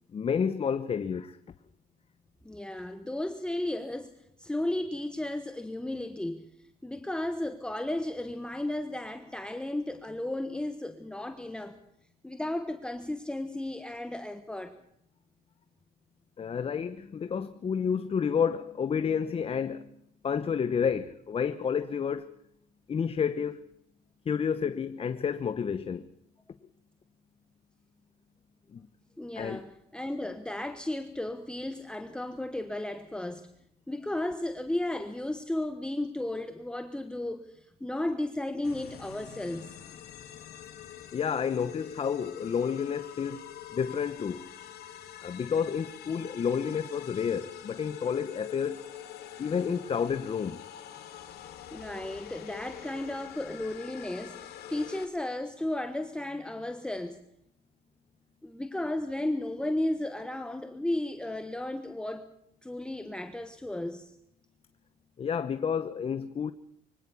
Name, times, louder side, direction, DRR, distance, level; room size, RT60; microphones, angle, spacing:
voice 1, 0.1-1.4 16.4-19.9 20.2-22.3 22.9-23.6 24.3-26.1 28.7-28.8 29.4-29.6 41.1-43.4 43.7-44.5 45.2-48.8 49.4-50.6 65.2-66.5, left 7 dB, 35° left, 1.0 m, -30 dB
voice 2, 2.4-4.1 4.4-6.4 6.8-11.8 12.2-14.7 29.2-33.5 33.9-39.8 51.7-57.2 58.4-62.3 62.6-64.2, left 1 dB, 5° left, 1.4 m, -34 dB
sound 1, 38.6-55.0, left 11 dB, 70° left, 2.9 m, -45 dB
24.0 x 17.0 x 7.0 m
cardioid pair, 110°, 17 cm